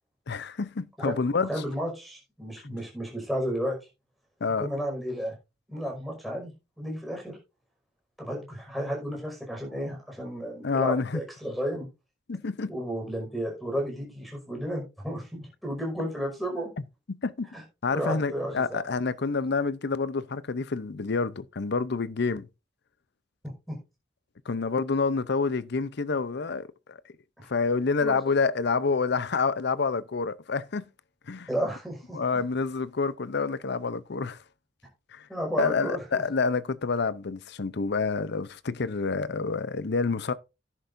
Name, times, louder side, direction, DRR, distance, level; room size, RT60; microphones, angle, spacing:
voice 1, 0.3-1.5 2.6-2.8 4.4-4.7 10.6-11.2 12.3-12.7 17.1-17.5 17.8-22.5 24.5-27.0 27.5-30.9 31.3-31.5 32.1-34.4 35.1-35.3 35.6-40.3, left 4 dB, 60° left, 0.6 m, -28 dB
voice 2, 1.5-3.8 4.6-5.3 5.7-6.5 6.8-7.4 8.2-11.9 12.7-16.7 17.5-17.6 17.9-18.8 23.7-23.8 27.4-27.5 28.0-28.1 31.5-32.2 35.3-36.2, equal, ahead, 5.4 m, -32 dB
12.0 x 10.5 x 2.6 m
head